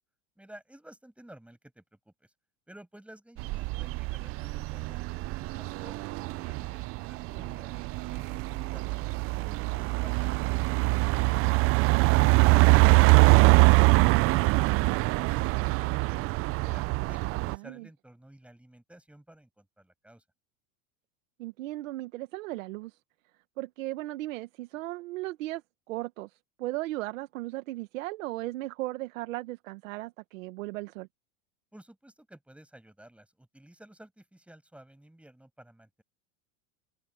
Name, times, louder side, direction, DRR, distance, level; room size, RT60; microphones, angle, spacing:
voice 1, 0.4-2.3 2.7-11.6 16.6-20.2 31.7-36.0, right 1 dB, 5° right, 6.3 m, -53 dB
sound 1, 3.4-17.6, right 24 dB, 35° right, 0.4 m, -24 dB
voice 2, 21.4-23.0 23.6-25.6 25.9-26.3 26.6-31.1, right 18 dB, 90° right, 1.4 m, -36 dB
open air
supercardioid pair, 140°, 38 cm